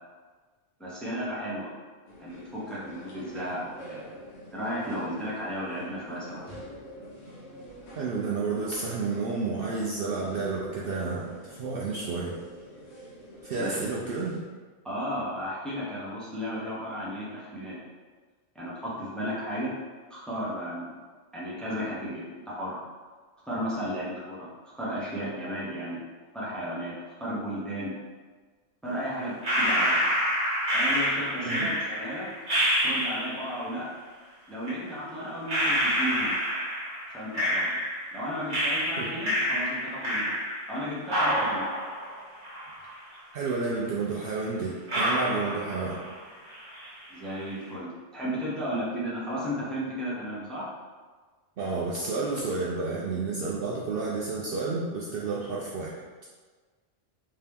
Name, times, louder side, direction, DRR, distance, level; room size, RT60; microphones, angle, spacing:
voice 1, 0.8-1.7 2.2-4.0 4.5-6.4 13.5-13.8 14.8-17.8 18.5-19.7 20.1-20.9 21.3-22.8 23.5-26.0 26.3-26.9 27.2-27.9 28.8-30.0 30.7-32.3 32.8-33.9 34.5-36.4 37.1-37.8 38.1-40.4 40.7-41.7 47.1-50.6, equal, ahead, -9 dB, 0.9 m, -34 dB
sound 1, 2.1-14.4, right 1 dB, 70° left, 1.1 m, -46 dB
voice 2, 8.0-12.4 13.4-14.4 31.4-31.7 39.0-39.1 43.3-46.0 51.6-56.0, right 4 dB, 65° right, -4 dB, 0.7 m, -31 dB
sound 2, 29.4-33.6 34.6-34.7 35.5-38.2 38.5-40.8 41.1-43.1 43.5-43.6 44.2-44.3 44.9-46.2 46.5-47.0, equal, 45° right, 1.3 m, -28 dB
3.3 x 2.8 x 3.5 m, 1.4 s
omnidirectional pair, 1.2 m